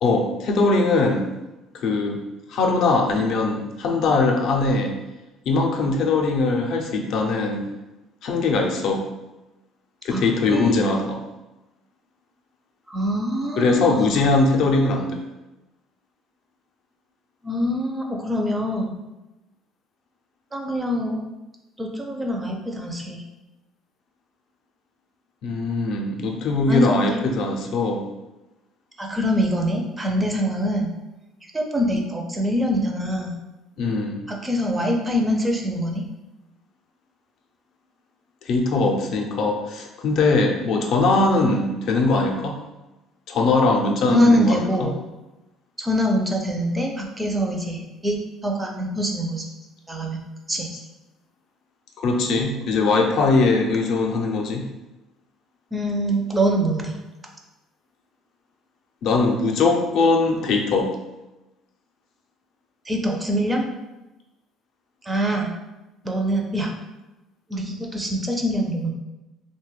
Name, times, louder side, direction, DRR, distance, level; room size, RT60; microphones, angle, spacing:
voice 1, 0.0-1.3 1.7-2.2 2.5-4.9 5.5-7.7 8.2-9.0 10.0-11.2 13.6-15.2 25.4-28.0 33.8-34.2 38.4-42.6 43.3-44.9 52.0-54.6 59.0-60.9, left 3 dB, 60° left, 2 dB, 0.4 m, -21 dB
voice 2, 10.5-10.9 12.9-14.2 17.4-19.0 20.5-21.2 21.8-23.2 26.7-27.2 29.0-30.9 31.5-33.3 34.3-36.0 44.1-45.0 45.8-49.5 49.9-50.2 50.5-50.7 55.7-57.0 62.8-63.7 65.0-65.6 66.0-66.7 67.5-68.9, equal, 15° right, 1 dB, 0.4 m, -24 dB
3.0 x 2.2 x 3.1 m, 1.0 s
cardioid pair, 140°, 0 cm